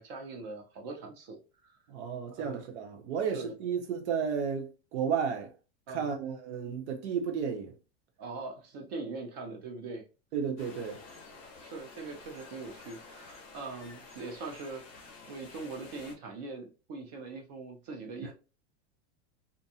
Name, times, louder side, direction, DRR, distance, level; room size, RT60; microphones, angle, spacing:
voice 1, 0.0-1.8 2.4-2.6 3.2-3.5 5.9-6.1 8.2-10.0 11.6-18.3, right 3 dB, 40° right, 0.5 m, -42 dB
voice 2, 1.9-5.5 5.9-7.7 10.3-11.0 18.2-18.3, right 7 dB, 80° right, 0.8 m, -33 dB
sound 1, 10.6-16.1, left 4 dB, 25° left, 0.5 m, -50 dB
2.6 x 2.2 x 2.7 m
supercardioid pair, 180°, 34 cm